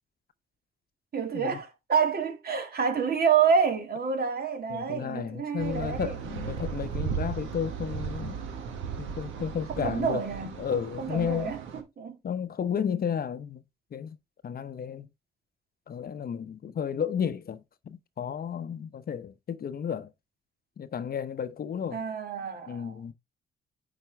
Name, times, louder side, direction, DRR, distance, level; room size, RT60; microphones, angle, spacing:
voice 1, 1.1-6.2 9.8-10.5 11.0-11.6 12.0-12.2 21.9-23.0, right 6 dB, 50° right, 2.0 m, -28 dB
voice 2, 4.7-8.4 9.0-10.3 10.6-11.5 12.2-13.6 13.9-14.2 14.4-15.1 15.9-20.1 20.8-22.0 22.7-23.1, left 7 dB, 50° left, 0.7 m, -33 dB
sound 1, 5.6-11.8, right 7 dB, 80° right, 1.4 m, -36 dB
9.2 x 4.3 x 3.4 m
supercardioid pair, 60°, 20 cm